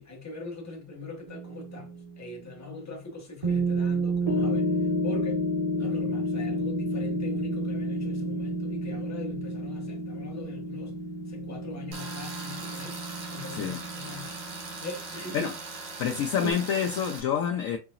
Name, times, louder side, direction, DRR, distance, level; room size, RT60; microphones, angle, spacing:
voice 1, 0.0-5.5 5.8-11.0 11.3-13.0 13.3-14.4 14.8-15.5, left 2 dB, 15° left, 0.8 m, -41 dB
sound 1, 1.3-2.2 3.4-15.2 16.4-16.5, right 1 dB, 35° right, 0.6 m, -30 dB
Tools, 11.9-17.2, right 3 dB, 75° right, 1.9 m, -40 dB
voice 2, 13.5-13.8 15.3-15.5 16.0-17.8, left 8 dB, 80° left, 0.7 m, -27 dB
4.8 x 2.8 x 2.5 m
omnidirectional pair, 2.0 m